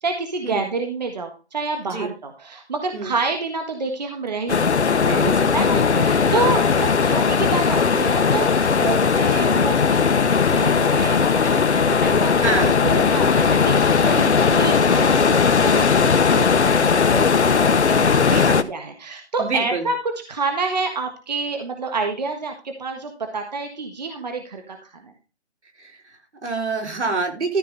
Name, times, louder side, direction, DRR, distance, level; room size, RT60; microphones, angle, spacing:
voice 1, 0.0-4.7 5.0-5.1 5.5-18.0 18.3-20.0 20.3-24.8, right 3 dB, 40° right, 5 dB, 1.6 m, -28 dB
sound 1, 4.5-18.6, left 5 dB, 85° left, 1.1 m, -18 dB
voice 2, 5.0-6.6 12.4-12.8 17.6-17.7 18.3-18.7 19.4-19.9 25.8-27.6, right 3 dB, 85° right, 2 dB, 4.0 m, -27 dB
sound 2, 10.4-16.5, equal, 15° right, 1.0 m, -42 dB
13.5 x 5.4 x 4.0 m, 0.32 s
hypercardioid pair, 175°, 33 cm